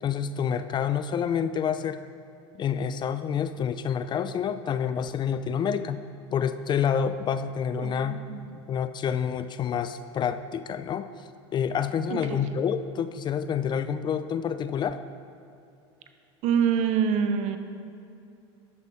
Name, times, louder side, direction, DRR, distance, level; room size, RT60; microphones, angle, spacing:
voice 1, 0.0-2.0 2.6-6.0 6.3-8.2 8.7-11.1 11.5-15.0, left 7 dB, 30° left, 12 dB, 0.5 m, -28 dB
voice 2, 7.8-8.4 12.1-12.4 16.4-17.6, right 7 dB, 55° right, 8 dB, 0.9 m, -26 dB
12.5 x 6.8 x 4.8 m, 2.7 s
hypercardioid pair, 90°, 14 cm